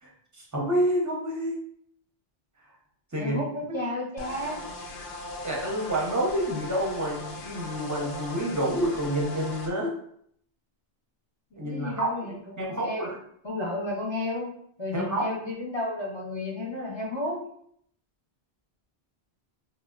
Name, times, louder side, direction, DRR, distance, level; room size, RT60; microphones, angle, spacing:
voice 1, 0.0-1.6 3.1-3.4 3.7-3.8 5.4-9.9 11.6-13.2 14.9-15.4, right 1 dB, 20° right, -2 dB, 0.6 m, -28 dB
voice 2, 3.2-4.6 11.5-13.1 13.4-14.5 14.8-17.5, left 2 dB, 30° left, -3 dB, 0.7 m, -32 dB
sound 1, 4.2-9.7, left 2 dB, 65° left, 0.7 m, -39 dB
4.2 x 2.1 x 2.3 m, 0.66 s
omnidirectional pair, 1.1 m